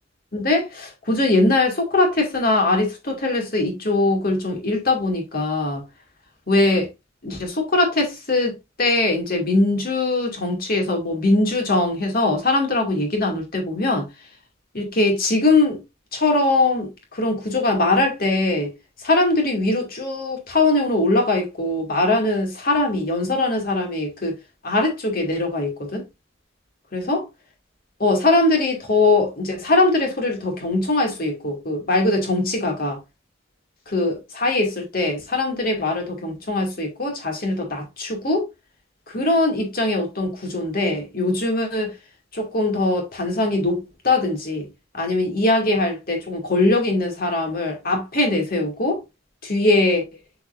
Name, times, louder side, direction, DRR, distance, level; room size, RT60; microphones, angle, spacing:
voice 1, 0.3-5.8 6.5-6.9 7.2-14.0 14.7-15.8 16.1-18.7 19.0-24.4 24.6-26.0 26.9-27.2 28.0-33.0 33.9-38.4 39.1-41.9 42.3-43.8 44.0-44.7 44.9-49.0 49.4-50.0, left 2 dB, 50° left, 2.3 m, -21 dB
8.5 x 4.6 x 2.5 m
head